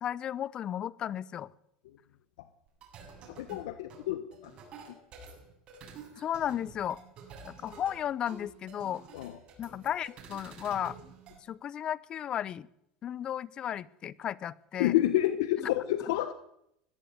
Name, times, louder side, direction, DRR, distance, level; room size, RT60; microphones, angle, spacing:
voice 1, 0.0-1.5 6.2-7.0 7.4-9.0 9.6-11.0 11.5-12.7 13.0-14.9, left 10 dB, 40° left, 21 dB, 0.8 m, -34 dB
sound 1, 2.7-11.4, right 4 dB, 45° right, 7.3 m, -50 dB
voice 2, 3.2-4.5 4.9-5.0 9.1-9.4 14.7-16.3, left 14 dB, 85° left, 11 dB, 1.3 m, -29 dB
20.0 x 15.0 x 9.5 m, 0.77 s
supercardioid pair, 120°, 2 cm